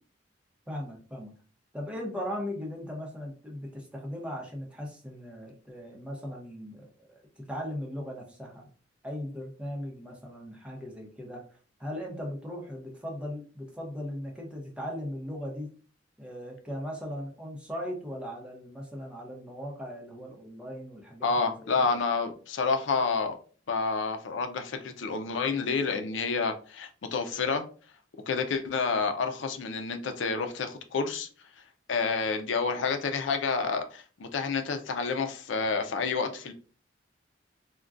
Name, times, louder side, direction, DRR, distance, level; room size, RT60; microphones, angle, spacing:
voice 1, 0.7-1.3 1.7-8.7 9.0-15.7 16.2-21.9, equal, 5° right, -1 dB, 0.8 m, -38 dB
voice 2, 21.2-23.4 23.7-27.6 28.3-31.3 31.9-36.5, left 4 dB, 90° left, 6 dB, 0.5 m, -29 dB
3.6 x 2.2 x 2.4 m, 0.39 s
head